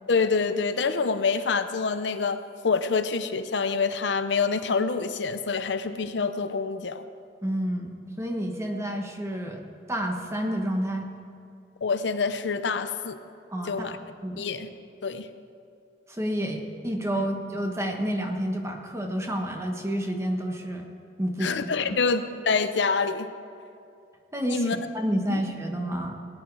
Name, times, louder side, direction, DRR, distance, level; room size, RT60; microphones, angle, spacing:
voice 1, 0.1-7.0 11.8-13.2 13.7-14.0 14.4-14.7 15.0-15.3 17.1-17.3 21.4-23.3 24.5-24.8 25.3-25.4, left 4 dB, 75° left, 10 dB, 0.7 m, -26 dB
voice 2, 7.4-11.1 13.5-14.5 16.1-20.9 21.2-22.0 24.3-26.1, equal, 15° right, 2 dB, 1.3 m, -30 dB
18.5 x 9.8 x 4.7 m, 2.5 s
head